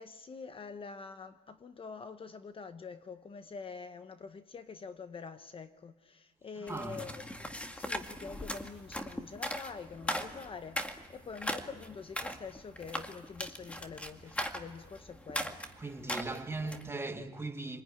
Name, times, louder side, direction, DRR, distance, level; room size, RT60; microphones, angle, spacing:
voice 1, 0.0-15.6 16.3-17.3, left 5 dB, 35° left, 1.0 m, -46 dB
sound 1, 6.7-16.9, equal, 5° left, 2.0 m, -39 dB
voice 2, 6.7-7.0 15.8-17.8, right 3 dB, 15° right, 2.1 m, -38 dB
28.5 x 21.0 x 10.0 m
cardioid pair, 110°, 17 cm